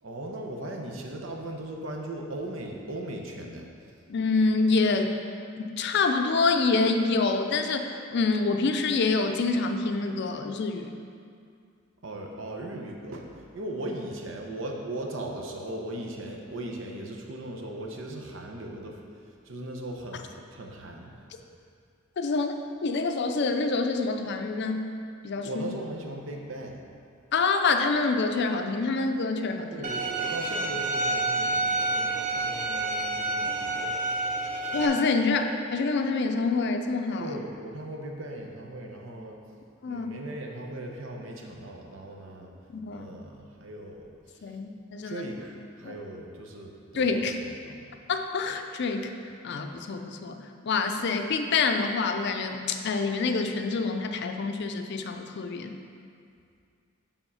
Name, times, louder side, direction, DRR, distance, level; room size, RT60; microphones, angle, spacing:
voice 1, 0.0-3.7 12.0-19.0 19.5-21.1 25.4-26.8 29.7-34.0 37.2-39.4 39.9-42.5 42.9-44.6 45.0-47.9, right 1 dB, 70° right, 1 dB, 0.8 m, -38 dB
voice 2, 4.1-5.1 5.8-10.9 22.2-22.5 22.8-24.9 25.2-25.6 27.3-29.9 34.7-37.4 39.8-40.1 42.7-43.1 44.4-45.2 45.8-45.9 46.9-47.4 48.1-49.1 49.4-50.4 50.6-55.8, left 4 dB, 60° left, 6 dB, 0.5 m, -26 dB
Bowed string instrument, 29.8-34.9, right 2 dB, 40° right, 0.6 m, -29 dB
7.1 x 3.6 x 5.5 m, 2.3 s
head